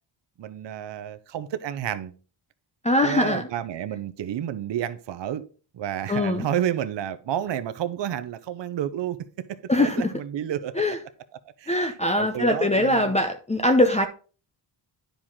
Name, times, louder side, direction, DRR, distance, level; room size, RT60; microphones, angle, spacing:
voice 1, 0.4-2.1 3.0-5.5 5.7-10.8 11.6-13.2, right 10 dB, 60° right, 0.7 m, -30 dB
voice 2, 2.8-3.4 6.1-6.5 9.7-10.1 10.8-11.0 11.7-14.1, left 1 dB, 15° left, 0.6 m, -22 dB
10.0 x 5.0 x 3.6 m
cardioid pair, 100°, 50 cm